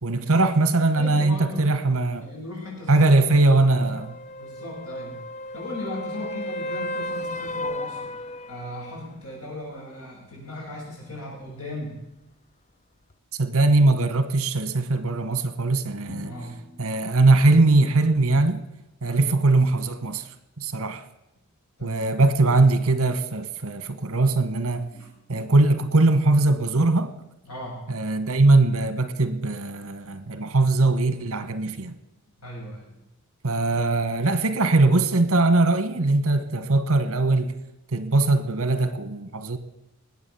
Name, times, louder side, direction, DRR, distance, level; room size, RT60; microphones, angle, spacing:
voice 1, 0.0-2.3 2.9-4.1 13.3-16.3 16.8-18.6 19.0-20.3 20.6-21.0 21.8-24.8 25.3-27.1 27.9-31.9 33.4-37.5 37.9-39.6, right 2 dB, 65° right, 1.3 m, -21 dB
voice 2, 0.9-1.9 2.2-4.0 4.4-5.2 5.5-8.1 8.5-12.0 16.2-16.6 19.1-19.3 21.8-22.0 22.4-22.5 24.9-25.1 25.4-25.5 27.4-27.8 32.4-33.0, left 1 dB, 75° left, 7.0 m, -37 dB
sound 1, 3.3-9.0 13.1-13.2, left 1 dB, 30° left, 0.5 m, -34 dB
Drum, 16.1-18.1, equal, 5° left, 2.4 m, -45 dB
19.5 x 8.4 x 7.1 m
head